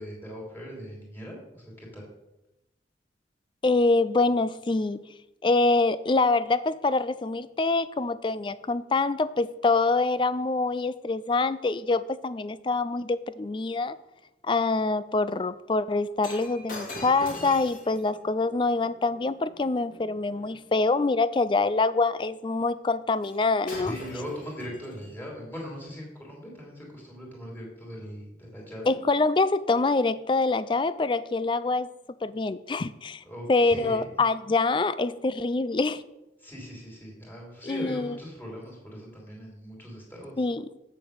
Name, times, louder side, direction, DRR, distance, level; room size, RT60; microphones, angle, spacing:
voice 1, 0.0-2.0 23.7-29.0 33.3-34.1 36.4-40.4, equal, 10° left, -2 dB, 3.1 m, -40 dB
voice 2, 3.6-5.0 5.4-14.0 14.4-24.0 28.9-31.9 32.2-33.2 33.5-36.0 37.6-38.2 40.4-40.7, left 3 dB, 30° left, 16 dB, 0.4 m, -25 dB
Shatter, 16.2-20.6 23.2-23.4 23.7-25.2 25.9-26.1, left 1 dB, 50° left, 2.6 m, -43 dB
8.0 x 7.0 x 6.4 m, 0.94 s
head